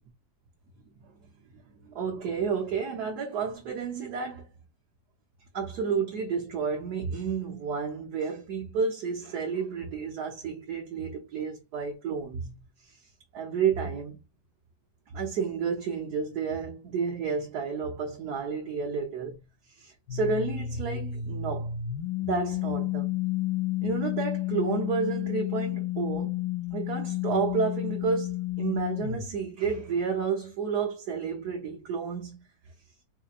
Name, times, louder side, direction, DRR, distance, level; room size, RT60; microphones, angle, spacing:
voice 1, 1.8-4.5 5.5-12.5 12.8-13.0 13.3-14.2 15.1-19.4 19.7-21.7 22.2-23.1 23.8-26.4 26.7-32.4, right 5 dB, 80° right, 1.4 m, -31 dB
sound 1, 20.1-29.3, left 13 dB, 85° left, 1.1 m, -31 dB
4.1 x 2.9 x 2.4 m
omnidirectional pair, 1.7 m